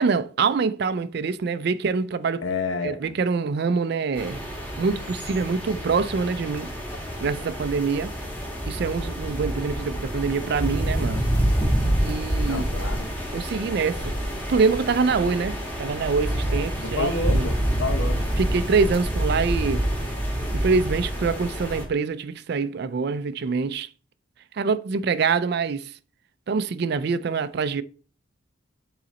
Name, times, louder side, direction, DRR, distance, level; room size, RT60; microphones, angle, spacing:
voice 1, 0.0-2.4 2.8-4.4 4.8-6.7 7.2-8.1 8.7-11.2 12.0-12.6 13.3-14.2 14.5-17.5 18.4-19.9 20.5-23.9 24.6-25.9 26.5-27.8, right 5 dB, 50° right, 0.3 m, -25 dB
voice 2, 2.4-3.1 12.4-13.1 16.8-18.2, left 3 dB, 75° left, 1.0 m, -29 dB
sound 1, 4.2-21.8, equal, 10° left, 1.6 m, -27 dB
7.6 x 3.9 x 4.1 m
head